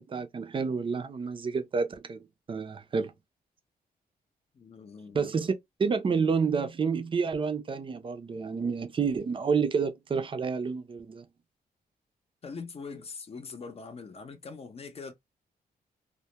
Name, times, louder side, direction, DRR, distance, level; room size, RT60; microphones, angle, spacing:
voice 1, 0.0-3.1 5.1-5.5 5.8-11.2, right 5 dB, 30° right, 0.5 m, -29 dB
voice 2, 4.5-5.3 12.4-15.1, left 4 dB, 40° left, 0.6 m, -42 dB
2.2 x 2.1 x 2.8 m
cardioid pair, 105°, 16 cm